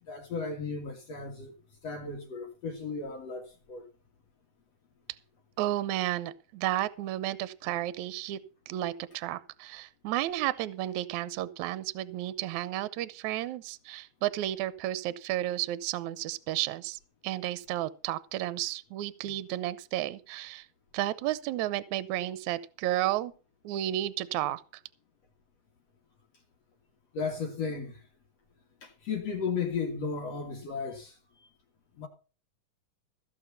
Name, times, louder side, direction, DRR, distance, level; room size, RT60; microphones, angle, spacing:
voice 1, 0.0-1.5 1.8-3.9 19.2-19.4 27.1-28.1 28.8-31.5 32.0-32.1, left 5 dB, 55° left, 2.7 m, -35 dB
voice 2, 5.6-8.4 8.7-20.7 20.9-23.3 23.6-24.6, right 14 dB, 75° right, 2.0 m, -32 dB
16.0 x 7.1 x 5.7 m
omnidirectional pair, 3.8 m